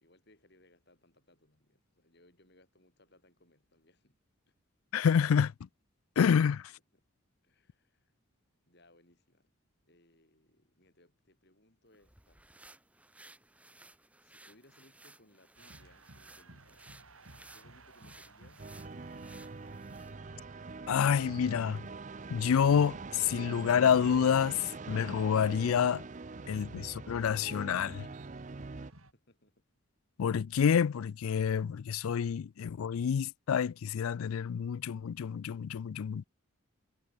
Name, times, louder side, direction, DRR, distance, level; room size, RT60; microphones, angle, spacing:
voice 1, 0.0-4.2 4.5-4.6 6.7-7.0 7.4-8.1 8.6-9.5 9.8-12.5 14.2-16.9 17.5-19.3 28.7-29.6, left 1 dB, 50° left, 7.6 m, -66 dB
voice 2, 4.9-5.5 6.2-6.6 20.9-21.8 22.3-26.0 26.5-28.1 30.2-36.2, left 7 dB, 80° left, 0.4 m, -28 dB
sound 1, 11.9-20.2, right 2 dB, 5° right, 1.6 m, -58 dB
sound 2, 15.5-29.1, right 1 dB, 75° right, 7.1 m, -57 dB
sound 3, 18.6-28.9, right 4 dB, 35° right, 0.5 m, -44 dB
head